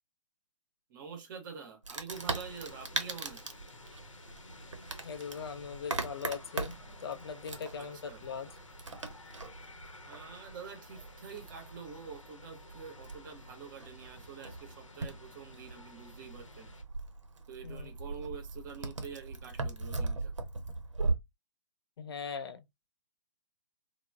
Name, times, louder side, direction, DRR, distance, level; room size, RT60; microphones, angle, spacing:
voice 1, 0.9-3.4 7.8-8.2 10.1-16.7 17.5-20.3, right 6 dB, 40° right, 0.8 m, -46 dB
Wood, 1.8-21.1, right 3 dB, 75° right, 0.7 m, -40 dB
sound 1, 2.1-16.8, left 2 dB, 80° left, 0.7 m, -53 dB
voice 2, 5.0-8.5 17.6-17.9 22.0-22.6, left 6 dB, 50° left, 0.4 m, -40 dB
2.2 x 2.0 x 3.2 m
figure-of-eight pair, 125°, 16 cm